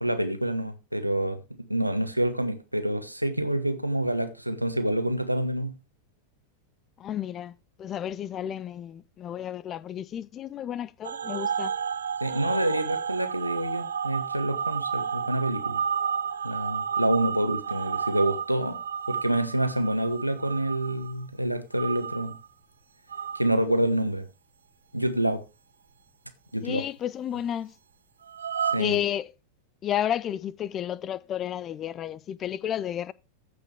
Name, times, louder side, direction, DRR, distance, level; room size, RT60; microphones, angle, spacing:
voice 1, 0.0-1.4 1.7-5.7 12.2-15.8 16.4-18.8 19.1-22.3 23.3-24.2 24.9-25.4 26.5-26.8 28.7-29.0, right 1 dB, 90° right, 1.2 m, -27 dB
voice 2, 7.0-11.7 26.6-27.7 28.7-29.3 29.8-33.1, left 10 dB, 30° left, 0.4 m, -32 dB
sound 1, 11.0-21.2 21.7-22.5 23.1-23.5 28.3-28.8, right 7 dB, 70° right, 0.6 m, -31 dB
15.0 x 5.2 x 3.5 m
figure-of-eight pair, 90°, 0 cm